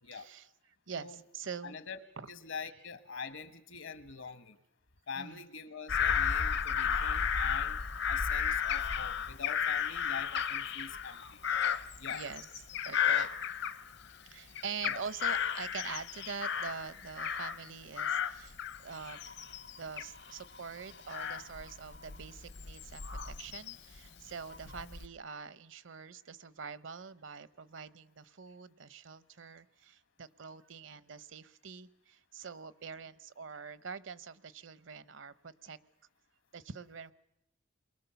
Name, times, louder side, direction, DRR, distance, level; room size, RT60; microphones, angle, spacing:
voice 1, 0.1-0.5 0.9-1.8 2.2-2.3 5.1-5.4 12.1-12.5 12.8-13.3 13.7-13.9 14.3-18.6 18.8-19.2 19.8-35.8 36.5-37.1, right 5 dB, 70° right, 16 dB, 0.8 m, -44 dB
voice 2, 1.6-2.0 2.3-4.6 5.1-7.8 8.1-11.4 12.0-12.2 14.9-15.0 24.7-24.8, left 5 dB, 70° left, 11 dB, 1.4 m, -44 dB
Bird vocalization bird call bird song / Crow, 5.9-14.2 14.6-17.7 18.0-24.0 24.5-25.1, left 8 dB, 55° left, 0.8 m, -34 dB
29.0 x 22.5 x 7.0 m, 0.86 s
head